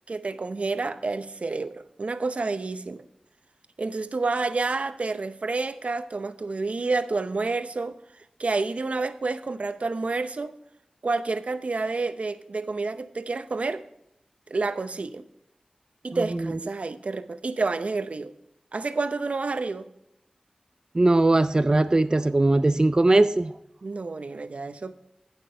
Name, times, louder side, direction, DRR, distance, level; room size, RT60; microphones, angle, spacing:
voice 1, 0.1-3.0 3.8-8.0 8.4-10.5 11.0-13.8 14.5-15.2 16.0-18.3 18.7-19.9 23.8-24.9, right 3 dB, 70° right, 0.7 m, -29 dB
voice 2, 20.9-23.5, right 2 dB, 35° right, 0.4 m, -20 dB
16.0 x 6.0 x 3.3 m
wide cardioid pair, 50°, 2 cm